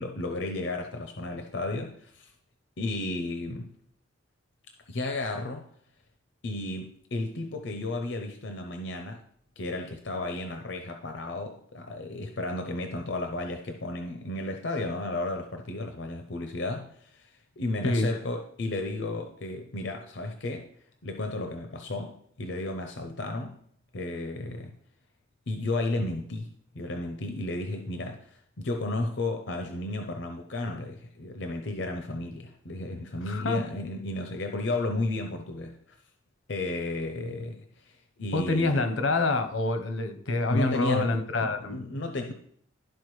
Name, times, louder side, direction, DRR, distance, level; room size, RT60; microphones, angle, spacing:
voice 1, 0.0-1.9 2.8-3.7 4.9-5.6 6.4-9.2 9.6-16.8 17.6-20.6 21.0-22.1 22.4-23.5 23.9-24.7 25.5-26.4 26.8-28.2 28.6-35.7 36.5-37.6 38.2-38.8 40.5-42.3, left 2 dB, 65° left, 4 dB, 0.7 m, -33 dB
voice 2, 33.3-33.6 38.3-41.8, left 2 dB, 85° left, 8 dB, 1.0 m, -27 dB
12.0 x 4.6 x 3.2 m, 0.64 s
head